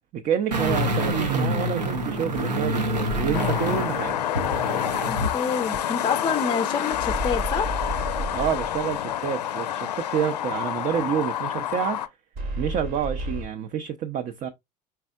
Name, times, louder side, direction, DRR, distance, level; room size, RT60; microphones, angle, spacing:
voice 1, 0.1-4.1 8.3-12.0 12.6-14.5, right 8 dB, 40° right, 0.5 m, -28 dB
sound 1, 0.5-5.4 5.7-5.8, right 1 dB, 85° right, 0.8 m, -26 dB
sound 2, 3.1-3.7 6.9-9.0 12.3-13.5, right 1 dB, 55° right, 1.0 m, -32 dB
sound 3, 3.3-12.1, left 10 dB, 75° left, 0.5 m, -28 dB
voice 2, 5.1-7.8, left 6 dB, 25° left, 0.4 m, -27 dB
4.5 x 4.1 x 2.3 m
figure-of-eight pair, 65°, 21 cm